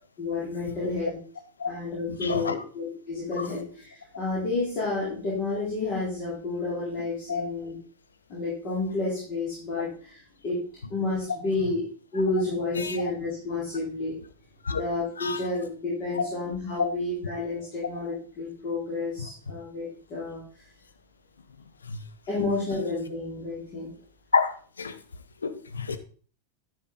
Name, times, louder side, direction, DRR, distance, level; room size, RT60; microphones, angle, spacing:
voice 1, 0.2-1.2 1.7-7.8 8.3-10.6 10.9-14.2 14.7-20.4 22.3-23.9, left 3 dB, 35° left, -7 dB, 3.8 m, -30 dB
voice 2, 2.2-2.5 3.4-3.5 7.3-7.4 12.8-13.0 14.7-14.8 15.2-15.4 16.2-16.3 16.8-16.9 24.3-24.9 25.4-26.0, left 5 dB, 75° left, 10 dB, 0.8 m, -27 dB
10.5 x 5.8 x 3.9 m, 0.41 s
figure-of-eight pair, 90°, 0 cm